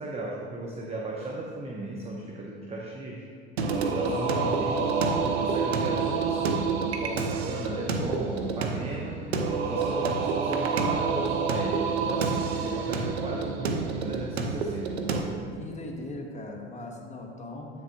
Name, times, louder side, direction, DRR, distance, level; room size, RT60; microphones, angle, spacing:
voice 1, 0.0-3.3 3.7-4.8 5.2-15.4, right 2 dB, 20° right, -2 dB, 0.9 m, -36 dB
Singing, 3.6-15.2, right 5 dB, 80° right, 0.7 m, -28 dB
voice 2, 4.0-4.6 15.6-17.7, left 2 dB, 20° left, 1 dB, 1.2 m, -38 dB
8.3 x 6.6 x 2.9 m, 2.3 s
figure-of-eight pair, 70°, 32 cm